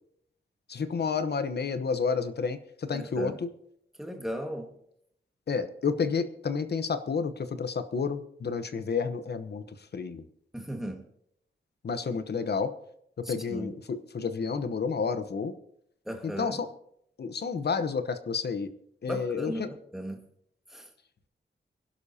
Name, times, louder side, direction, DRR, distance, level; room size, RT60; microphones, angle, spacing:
voice 1, 0.7-3.5 5.5-9.6 9.9-10.2 11.8-12.7 13.3-15.5 16.2-16.7 17.2-18.7 19.0-19.7, left 5 dB, 60° left, 10 dB, 1.0 m, -30 dB
voice 2, 2.9-3.4 4.0-4.7 10.5-11.0 13.2-13.7 16.0-16.6 19.1-20.3 20.7-20.9, equal, ahead, 3 dB, 1.7 m, -37 dB
24.5 x 11.5 x 2.8 m, 0.73 s
wide cardioid pair, 170°, 19 cm